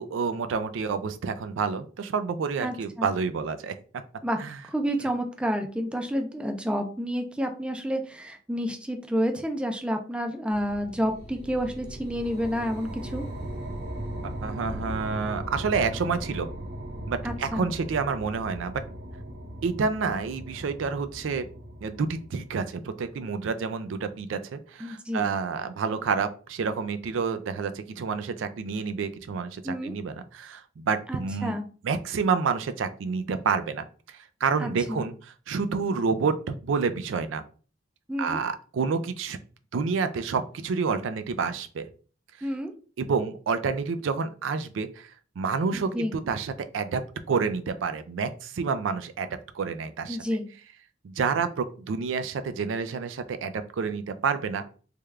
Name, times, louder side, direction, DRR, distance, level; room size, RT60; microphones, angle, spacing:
voice 1, 0.0-3.8 4.4-4.6 14.4-16.5 17.1-18.8 19.6-21.4 21.8-31.5 31.8-37.4 38.2-39.4 39.7-41.9 42.4-42.5 43.0-47.0 47.3-49.3 49.5-50.2 51.0-54.6, right 5 dB, 75° right, 10 dB, 0.4 m, -29 dB
voice 2, 2.6-3.1 4.2-4.4 4.7-13.3 17.2-17.7 24.8-25.3 29.6-29.9 31.1-31.6 34.6-35.1 38.1-38.4 42.4-42.7 45.7-46.1 50.1-50.4, equal, 5° right, 4 dB, 0.4 m, -29 dB
sound 1, 10.5-23.0, right 1 dB, 55° right, 0.9 m, -38 dB
3.4 x 2.3 x 3.2 m, 0.39 s
head